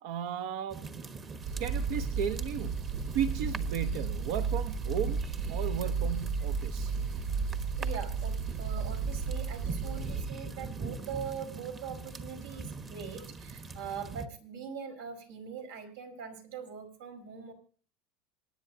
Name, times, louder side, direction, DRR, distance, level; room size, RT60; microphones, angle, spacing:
voice 1, 0.0-0.9 1.6-6.9, right 9 dB, 60° right, 10 dB, 0.8 m, -35 dB
sound 1, 0.7-14.3, right 4 dB, 25° right, 1.1 m, -43 dB
sound 2, 1.4-10.2, right 5 dB, 45° right, 4.5 m, -33 dB
voice 2, 7.8-17.5, right 7 dB, 85° right, 4 dB, 4.9 m, -42 dB
27.5 x 10.0 x 2.7 m, 0.41 s
supercardioid pair, 150°, 0 cm